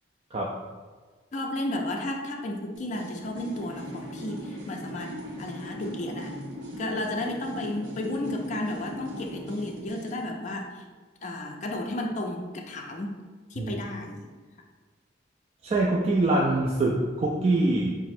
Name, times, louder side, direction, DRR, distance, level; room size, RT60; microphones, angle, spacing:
voice 1, 1.3-5.1 5.4-6.3 6.8-10.8 11.2-13.1 13.5-14.2, left 1 dB, 40° left, 1 dB, 0.4 m, -33 dB
sound 1, 2.7-10.2, equal, 70° right, 0.7 m, -39 dB
voice 2, 15.6-17.9, right 2 dB, 35° right, -3 dB, 0.3 m, -24 dB
4.0 x 2.0 x 4.2 m, 1.4 s
head